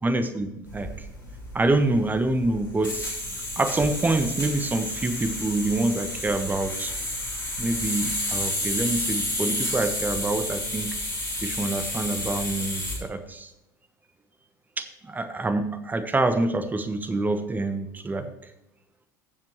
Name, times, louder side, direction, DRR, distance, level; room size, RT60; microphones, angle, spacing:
voice 1, 0.0-0.9 1.5-3.1 3.6-6.9 7.6-11.0 11.4-13.5 14.8-18.3, right 2 dB, 15° right, 8 dB, 1.1 m, -26 dB
sound 1, 0.7-13.0, left 1 dB, 85° left, 3.7 m, -31 dB
16.0 x 7.4 x 3.1 m, 0.90 s
figure-of-eight pair, 70°, 11 cm